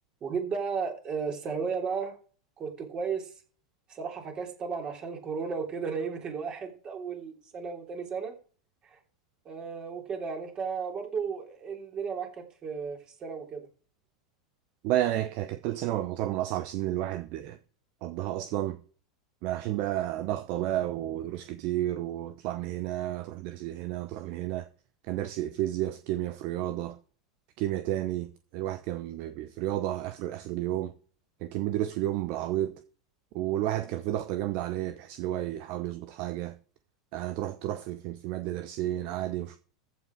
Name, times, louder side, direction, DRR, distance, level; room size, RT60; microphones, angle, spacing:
voice 1, 0.2-2.2 2.6-3.3 3.9-8.3 8.9-9.0 9.5-13.7, right 5 dB, 35° right, 3.5 m, -34 dB
voice 2, 14.8-17.6 18.0-18.8 19.4-24.7 25.1-27.0 27.6-30.9 31.4-32.8 33.3-36.6 37.1-39.6, right 13 dB, 55° right, 0.8 m, -31 dB
15.0 x 5.7 x 4.7 m
hypercardioid pair, 90°, 3 cm